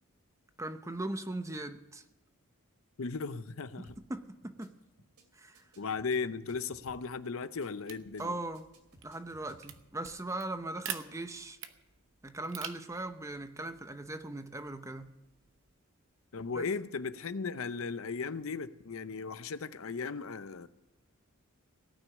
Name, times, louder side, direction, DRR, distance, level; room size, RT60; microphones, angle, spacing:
voice 1, 0.6-2.0 3.8-4.7 5.3-5.6 8.2-8.7 9.0-11.6 12.2-15.1 16.5-16.6, right 2 dB, 15° right, 0.7 m, -39 dB
voice 2, 3.0-4.0 5.8-8.3 16.3-20.7, left 4 dB, 65° left, 0.6 m, -36 dB
sound 1, 3.9-4.1 4.4-4.7 5.0-5.2 5.5-7.1 7.4-7.7 8.0-8.2 8.5-9.8, right 1 dB, 85° right, 2.6 m, -60 dB
sound 2, 7.8-15.7, right 9 dB, 55° right, 0.9 m, -48 dB
18.0 x 6.2 x 9.7 m
head